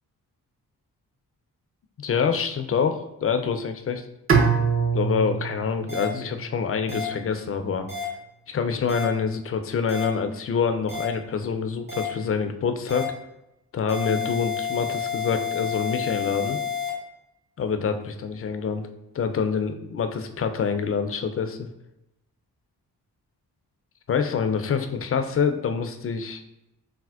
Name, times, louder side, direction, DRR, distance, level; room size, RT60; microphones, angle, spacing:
voice 1, 2.0-4.1 4.9-7.9 8.5-13.1 13.7-16.6 17.6-18.9 19.1-21.7 24.1-26.4, left 6 dB, 35° left, 7 dB, 0.4 m, -26 dB
Bowed string instrument, 4.3-7.3, right 5 dB, 35° right, 0.5 m, -25 dB
sound 1, 5.9-6.0 6.9-7.0 7.9-8.0 8.9-9.0 9.9-10.0 10.9-11.0 11.9-12.0 12.9-13.0 13.9-16.9, left 6 dB, 55° right, 1.5 m, -30 dB
4.1 x 2.1 x 2.3 m, 0.89 s
supercardioid pair, 40°, 40 cm